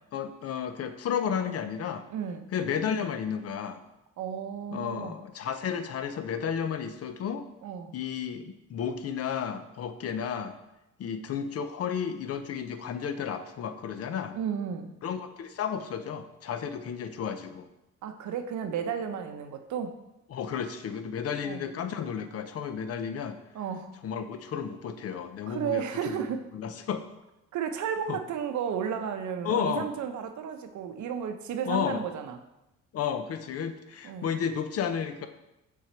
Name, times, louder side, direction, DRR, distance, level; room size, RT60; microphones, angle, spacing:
voice 1, 0.1-2.1 2.5-3.8 4.7-7.5 7.9-10.6 11.0-14.4 15.0-17.7 20.3-23.4 24.0-26.3 26.5-27.0 28.1-28.2 29.4-29.9 31.6-32.0 32.9-35.3, left 7 dB, 50° left, 9 dB, 0.5 m, -32 dB
voice 2, 2.1-2.5 4.2-5.2 7.6-7.9 14.3-15.0 18.0-19.9 21.4-21.7 23.5-23.9 25.5-26.4 27.5-32.4 34.0-34.3, right 8 dB, 70° right, 6 dB, 0.7 m, -33 dB
5.9 x 3.9 x 4.3 m, 0.91 s
cardioid pair, 120°, 31 cm